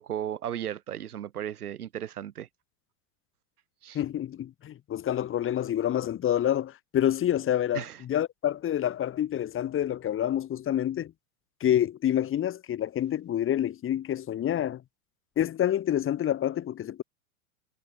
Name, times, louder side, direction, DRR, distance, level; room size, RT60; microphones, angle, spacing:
voice 1, 0.0-2.5 3.8-4.0 7.7-8.0, right 10 dB, 85° right, 2.6 m, -35 dB
voice 2, 3.9-11.1 11.6-14.8 15.4-17.0, left 11 dB, 30° left, 3.1 m, -27 dB
hypercardioid pair, 115°, 44 cm